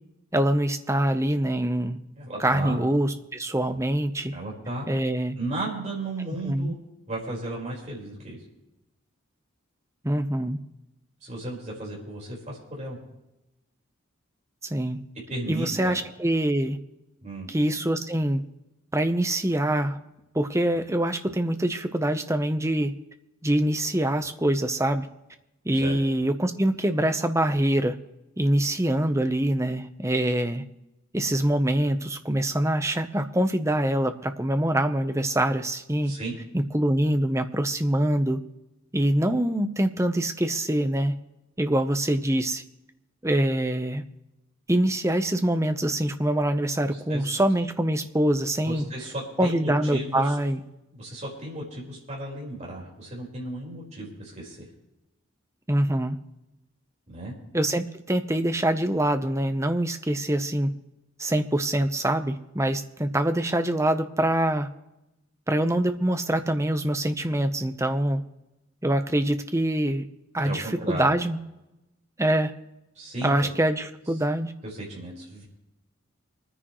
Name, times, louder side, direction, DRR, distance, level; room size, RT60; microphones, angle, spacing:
voice 1, 0.3-2.0 2.4-4.3 4.9-5.3 6.4-6.7 10.0-10.6 14.6-15.0 15.5-16.8 17.5-18.4 18.9-20.0 20.3-22.9 23.4-25.1 25.6-28.0 28.4-30.6 31.1-36.1 36.5-38.4 38.9-41.1 41.6-42.6 43.2-44.0 44.7-48.8 49.4-50.6 55.7-56.2 57.5-60.7 61.2-64.7 65.5-68.2 68.8-70.0 70.3-71.4 72.2-72.5 73.2-74.5, right 1 dB, 15° right, 8 dB, 0.8 m, -24 dB
voice 2, 2.2-2.8 4.3-4.8 5.4-6.7 7.1-8.4 11.2-13.0 15.3-16.0 17.2-17.5 25.7-26.0 36.0-36.4 46.8-47.3 48.6-50.3 50.9-54.7 57.1-57.3 70.4-71.2 73.0-73.5 74.6-75.4, right 1 dB, 35° right, -4 dB, 4.7 m, -35 dB
26.0 x 10.0 x 3.1 m, 0.93 s
head